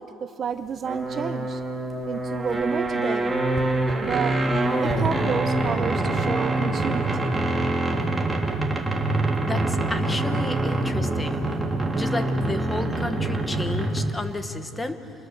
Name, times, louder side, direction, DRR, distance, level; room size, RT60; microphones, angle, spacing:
voice 1, 0.0-1.6 2.1-3.3 4.0-4.5 4.8-7.4, right 7 dB, 30° right, 10 dB, 0.5 m, -30 dB
sound 1, 0.8-14.2, right 2 dB, 5° right, 1.7 m, -25 dB
voice 2, 9.4-11.4 11.9-15.0, left 2 dB, 10° left, 9 dB, 0.9 m, -32 dB
27.0 x 21.0 x 6.7 m, 2.8 s
cardioid pair, 170°, 0 cm